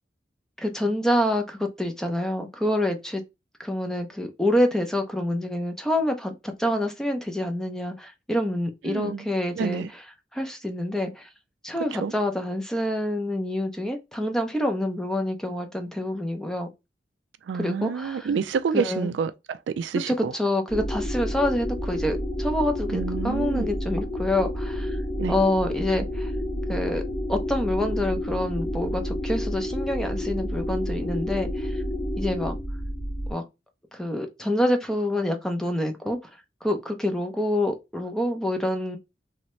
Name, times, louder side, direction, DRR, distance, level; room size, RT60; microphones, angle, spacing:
voice 1, 0.6-3.2 3.6-9.8 10.3-11.3 11.6-16.7 17.6-18.3 18.7-19.1 20.1-25.0 25.3-26.3 26.7-27.0 27.3-31.8 32.2-32.6 33.3-33.4 33.9-36.2 36.6-39.0, left 1 dB, 5° left, 0.6 m, -27 dB
voice 2, 8.8-9.3 9.6-9.9 11.9-12.1 17.4-20.3 22.9-23.7 25.2-25.3, right 6 dB, 75° right, 0.3 m, -28 dB
sound 1, 20.7-33.3, left 1 dB, 60° left, 1.6 m, -29 dB
3.2 x 2.7 x 3.0 m
head